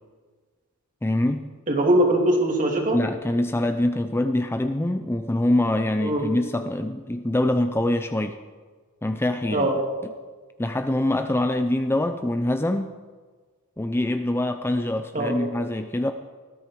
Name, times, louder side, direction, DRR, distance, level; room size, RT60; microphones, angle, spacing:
voice 1, 1.0-1.4 2.9-8.4 9.0-9.7 10.0-10.1 10.6-12.9 13.8-16.1, left 1 dB, 10° left, 7 dB, 0.6 m, -24 dB
voice 2, 1.7-3.0 6.0-6.2 9.5-9.7 15.1-15.3, right 1 dB, 40° right, 1 dB, 3.0 m, -21 dB
19.5 x 14.0 x 4.7 m, 1.4 s
head